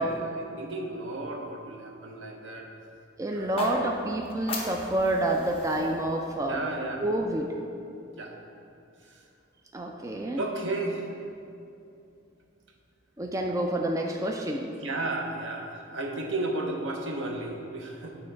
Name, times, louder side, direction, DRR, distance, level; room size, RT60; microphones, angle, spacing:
voice 1, 0.0-2.7 3.3-4.1 6.5-7.2 8.2-8.4 9.0-9.2 10.4-11.1 14.7-18.2, right 2 dB, 70° right, 2 dB, 0.8 m, -34 dB
voice 2, 3.2-6.6 7.0-7.5 9.7-10.4 13.2-14.7, right 1 dB, 15° right, 1 dB, 0.3 m, -28 dB
sound 1, 3.4-7.5, left 2 dB, 30° left, 0.8 m, -38 dB
8.6 x 3.8 x 4.5 m, 2.6 s
head